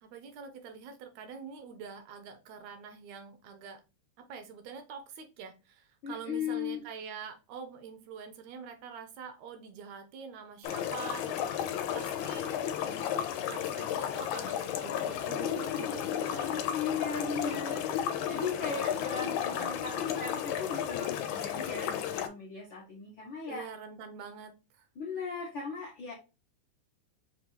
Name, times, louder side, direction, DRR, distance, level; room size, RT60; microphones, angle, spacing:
voice 1, 0.0-3.8 4.2-12.5 12.9-16.7 17.0-18.1 18.6-20.2 23.5-24.9, right 6 dB, 80° right, 7 dB, 1.8 m, -46 dB
voice 2, 6.0-6.8 16.7-17.9 18.3-23.7 25.0-26.1, left 5 dB, 65° left, -4 dB, 1.2 m, -37 dB
sound 1, 10.6-22.3, left 10 dB, 85° left, 2.0 m, -33 dB
5.3 x 2.4 x 3.0 m, 0.29 s
omnidirectional pair, 3.3 m